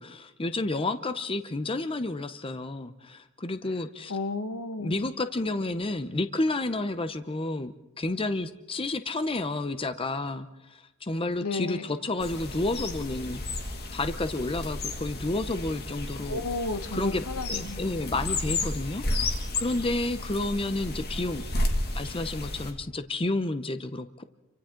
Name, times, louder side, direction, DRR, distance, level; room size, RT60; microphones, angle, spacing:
voice 1, 0.0-4.2 4.8-13.4 13.9-16.4 16.9-17.2 17.5-21.4 21.9-24.2, left 2 dB, 25° left, 10 dB, 0.7 m, -30 dB
voice 2, 4.1-5.0 11.4-11.9 16.2-17.8, left 3 dB, 85° left, 9 dB, 1.3 m, -33 dB
sound 1, 12.2-22.7, left 2 dB, 45° left, 2.2 m, -32 dB
30.0 x 24.5 x 3.8 m, 1.0 s
head